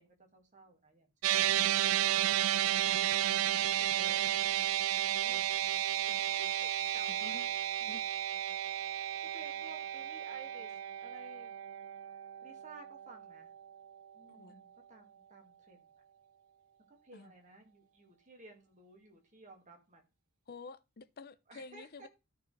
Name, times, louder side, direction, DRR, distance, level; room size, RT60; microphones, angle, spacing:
voice 1, 0.0-1.7 3.5-4.3 5.3-7.6 8.8-11.6 12.1-13.5 14.1-15.9 16.9-20.0 21.5-22.1, right 3 dB, 35° right, 2.0 m, -56 dB
sound 1, 1.2-13.7, right 12 dB, 65° right, 0.3 m, -32 dB
voice 2, 5.1-5.5 7.1-7.6 7.8-8.2 14.3-14.6 17.1-17.3 20.5-22.1, left 4 dB, 45° left, 0.6 m, -50 dB
14.0 x 4.6 x 3.3 m
head